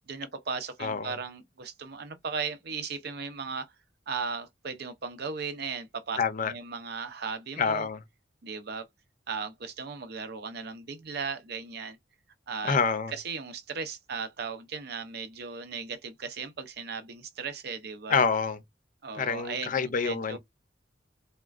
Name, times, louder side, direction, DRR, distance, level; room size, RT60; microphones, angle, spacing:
voice 1, 0.1-3.7 4.1-7.9 8.4-8.8 9.3-12.0 12.5-12.8 13.1-18.2 19.0-20.4, right 5 dB, 65° right, 0.6 m, -37 dB
voice 2, 0.8-1.1 6.2-6.5 7.6-8.0 12.6-13.1 18.1-18.6 19.1-20.4, left 5 dB, 50° left, 0.6 m, -27 dB
3.6 x 2.2 x 2.4 m
head